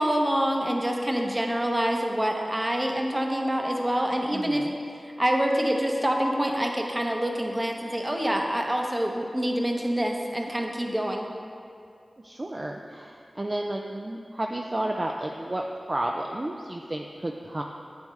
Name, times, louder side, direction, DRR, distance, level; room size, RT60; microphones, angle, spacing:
voice 1, 0.0-4.6 5.2-11.3, equal, 20° right, 1 dB, 0.8 m, -26 dB
voice 2, 4.3-4.7 12.2-17.6, right 1 dB, 35° right, 1 dB, 0.4 m, -32 dB
7.9 x 7.0 x 3.2 m, 2.5 s
wide cardioid pair, 60°, 0 cm